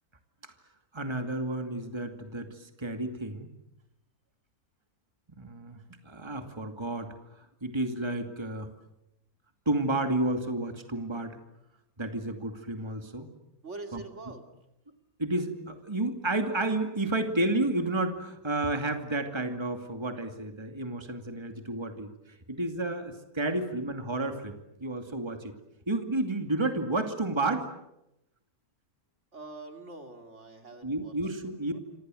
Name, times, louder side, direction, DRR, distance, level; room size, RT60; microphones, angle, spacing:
voice 1, 0.9-3.5 5.4-8.7 9.7-11.4 12.0-13.3 13.9-14.0 15.2-25.5 25.9-27.7 30.8-31.7, right 2 dB, 20° right, 6 dB, 2.5 m, -31 dB
voice 2, 13.6-14.5 29.3-31.1 31.4-31.8, right 3 dB, 50° right, 6 dB, 3.0 m, -44 dB
28.5 x 26.0 x 7.8 m, 0.86 s
omnidirectional pair, 1.5 m